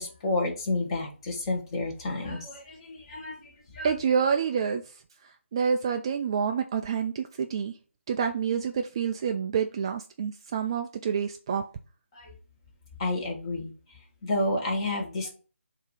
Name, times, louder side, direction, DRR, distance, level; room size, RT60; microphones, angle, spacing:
voice 1, 0.0-3.9 12.1-12.3 13.0-15.3, left 2 dB, 25° left, 1.4 m, -31 dB
voice 2, 3.8-4.8 5.5-7.7 8.1-11.6, right 6 dB, 25° right, 0.3 m, -27 dB
7.3 x 2.8 x 4.8 m
figure-of-eight pair, 155°, 7 cm